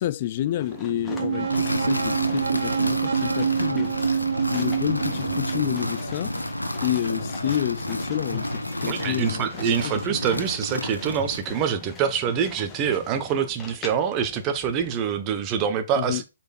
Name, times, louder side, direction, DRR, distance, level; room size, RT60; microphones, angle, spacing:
voice 1, 0.0-4.0 4.5-6.3 6.8-10.2 16.0-16.2, left 13 dB, 40° left, 0.4 m, -29 dB
sound 1, 0.6-15.2, left 4 dB, 10° left, 1.5 m, -42 dB
sound 2, 0.7-5.8, right 7 dB, 65° right, 0.8 m, -26 dB
sound 3, 1.5-11.5, left 1 dB, 90° left, 0.9 m, -31 dB
voice 2, 8.9-16.2, right 8 dB, 25° right, 1.0 m, -25 dB
8.1 x 4.4 x 4.2 m
figure-of-eight pair, 130°, 0 cm